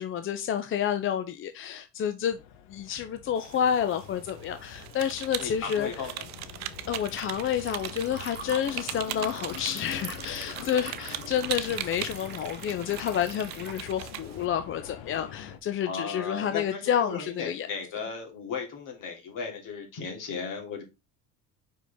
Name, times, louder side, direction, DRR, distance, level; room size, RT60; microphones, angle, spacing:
voice 1, 0.0-2.4 2.7-5.9 6.9-17.7, left 9 dB, 35° left, 0.5 m, -29 dB
sound 1, 2.3-15.6, left 9 dB, 80° left, 0.9 m, -45 dB
sound 2, 3.4-14.5, right 12 dB, 50° right, 0.6 m, -40 dB
voice 2, 5.4-6.2 15.8-20.8, left 5 dB, 60° left, 2.7 m, -36 dB
Liquid, 5.7-13.9, right 5 dB, 30° right, 1.3 m, -44 dB
5.5 x 4.9 x 3.5 m
cardioid pair, 130°, 36 cm